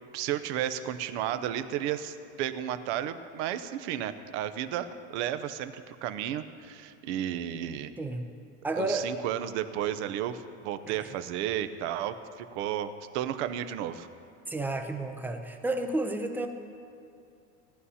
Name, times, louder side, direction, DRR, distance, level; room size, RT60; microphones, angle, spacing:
voice 1, 0.1-7.9 8.7-14.1, right 10 dB, 70° right, 11 dB, 0.8 m, -33 dB
voice 2, 8.0-8.3 8.6-9.1 10.9-11.1 14.5-16.5, right 2 dB, 5° right, 4 dB, 0.5 m, -31 dB
18.5 x 11.0 x 2.8 m, 2.6 s
supercardioid pair, 145°, 36 cm